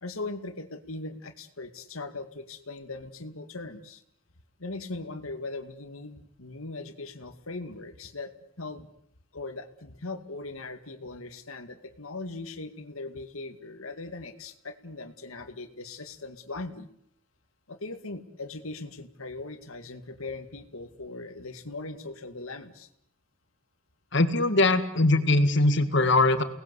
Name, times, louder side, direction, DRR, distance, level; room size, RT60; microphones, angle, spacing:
voice 1, 0.0-4.0 4.6-8.9 9.3-16.9 17.7-22.9, left 3 dB, 80° left, 8 dB, 2.2 m, -39 dB
voice 2, 24.1-26.4, left 2 dB, 55° left, 10 dB, 2.0 m, -21 dB
29.5 x 19.5 x 8.3 m, 0.71 s
head